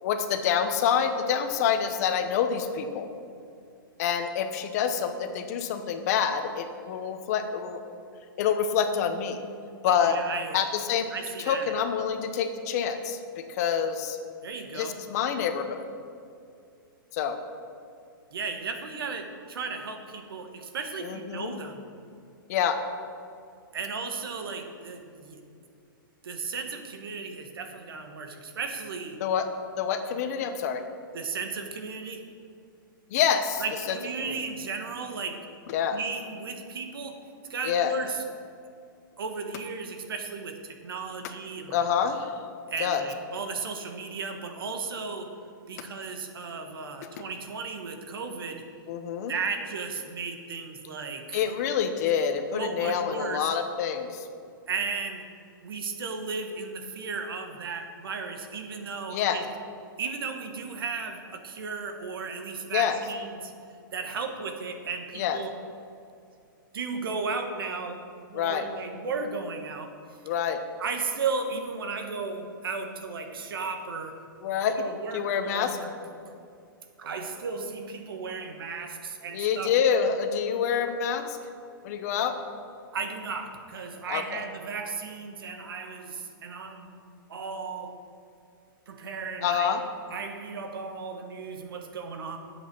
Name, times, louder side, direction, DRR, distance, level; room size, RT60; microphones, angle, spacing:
voice 1, 0.0-3.1 4.0-7.8 8.4-9.4 9.8-10.2 10.5-11.1 11.4-14.2 14.7-15.9 17.1-17.4 21.0-21.5 22.5-22.8 29.2-29.4 29.8-30.8 33.1-34.4 35.7-36.0 37.6-37.9 41.7-42.4 42.8-43.1 48.9-49.3 51.3-54.3 59.1-59.4 62.7-63.0 65.1-65.4 68.3-68.7 70.2-70.6 74.4-74.7 75.1-75.8 79.3-81.4 81.8-82.4 84.1-84.4 89.4-89.8, left 7 dB, 45° left, 7 dB, 1.0 m, -27 dB
voice 2, 9.8-10.6 11.1-11.7 14.4-15.0 18.3-21.8 23.7-25.4 26.2-29.2 31.1-32.2 33.6-35.4 35.9-37.2 37.5-38.2 39.2-41.8 42.7-45.3 45.7-48.6 49.3-51.4 52.5-53.6 54.7-55.2 55.6-59.4 60.0-63.5 63.9-65.5 66.7-68.0 68.3-69.9 70.8-74.2 74.7-76.0 76.3-76.4 77.0-79.7 82.9-86.9 87.3-88.0 88.9-89.7 90.1-92.4, right 4 dB, 80° right, 5 dB, 1.6 m, -35 dB
10.0 x 8.0 x 6.2 m, 2.4 s
hypercardioid pair, 155°, 12 cm